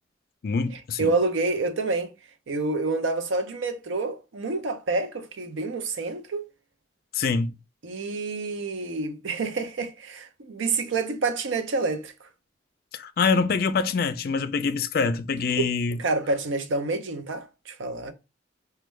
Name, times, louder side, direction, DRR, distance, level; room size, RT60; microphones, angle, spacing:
voice 1, 0.4-1.1 7.1-7.5 12.9-16.0, left 5 dB, 50° left, 0.3 m, -25 dB
voice 2, 1.0-2.1 2.5-6.4 7.8-12.1 15.6-15.7 16.0-18.1, right 3 dB, 90° right, 0.5 m, -28 dB
4.4 x 2.2 x 3.1 m
head